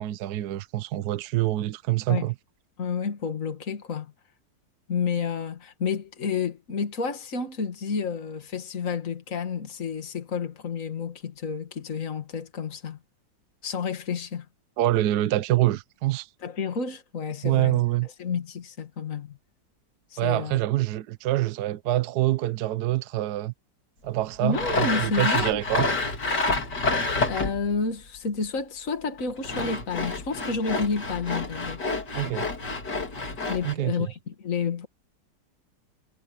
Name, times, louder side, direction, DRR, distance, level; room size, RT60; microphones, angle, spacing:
voice 1, 0.0-2.3 14.8-16.3 17.4-18.1 20.2-23.5 24.0-25.9 32.1-32.5 33.6-34.1, right 15 dB, 75° right, 1.2 m, -25 dB
voice 2, 2.8-4.1 4.9-13.0 13.6-14.5 16.4-19.4 20.1-20.6 24.4-25.6 27.3-31.8 33.5-34.9, left 5 dB, 50° left, 2.4 m, -30 dB
Sawing, 24.5-27.7 29.2-33.7, left 3 dB, 75° left, 3.7 m, -28 dB
omnidirectional pair, 1.8 m